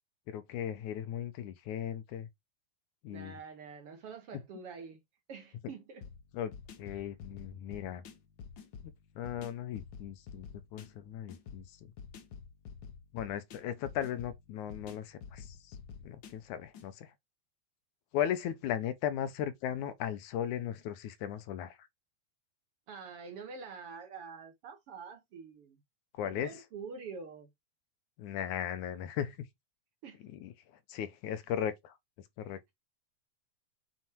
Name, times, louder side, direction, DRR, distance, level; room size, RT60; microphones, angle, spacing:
voice 1, 0.3-2.3 3.0-3.4 4.3-4.4 6.3-6.5 6.8-8.0 9.2-10.5 10.7-11.6 13.1-15.8 16.0-17.1 18.1-21.8 26.2-26.6 28.2-29.5 30.2-30.5 30.9-31.9 32.4-32.6, left 10 dB, 75° left, 2.4 m, -37 dB
voice 2, 3.1-5.0 5.3-6.1 6.9-7.1 22.9-25.8 26.2-27.5 30.0-30.2, right 5 dB, 55° right, 1.9 m, -46 dB
sound 1, 6.0-16.9, left 6 dB, 60° left, 1.2 m, -50 dB
7.6 x 4.5 x 4.5 m
omnidirectional pair, 3.5 m